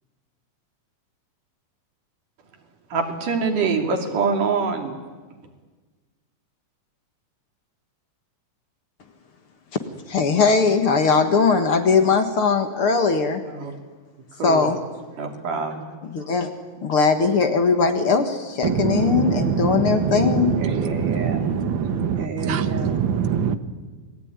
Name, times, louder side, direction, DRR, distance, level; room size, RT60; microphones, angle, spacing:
voice 1, 2.9-5.0 13.5-13.7 14.4-14.8 15.2-15.8 16.2-16.3 20.6-21.6 22.2-23.0, right 4 dB, 90° right, 4 dB, 4.5 m, -26 dB
voice 2, 10.1-13.4 14.4-14.8 16.0-16.5 16.8-20.6, left 5 dB, 50° left, 7 dB, 2.3 m, -20 dB
voice 3, 18.6-23.6, right 7 dB, 50° right, 9 dB, 1.7 m, -23 dB
28.5 x 20.5 x 9.7 m, 1.4 s
omnidirectional pair, 3.6 m